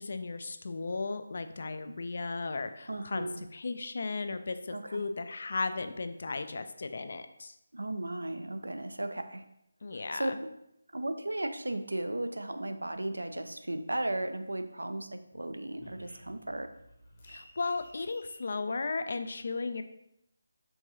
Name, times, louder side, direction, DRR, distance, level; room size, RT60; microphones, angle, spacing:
voice 1, 0.0-3.3 3.5-7.5 9.8-10.4 17.3-19.8, left 3 dB, 55° left, 10 dB, 0.3 m, -35 dB
voice 2, 2.9-3.4 4.7-5.1 7.7-9.4 9.9-10.4 10.9-16.7, right 1 dB, 85° right, 8 dB, 0.4 m, -35 dB
sound 1, 12.9-14.6 15.0-18.3, left 1 dB, 35° left, 0.9 m, -55 dB
4.6 x 3.6 x 2.8 m, 0.79 s
figure-of-eight pair, 160°, 0 cm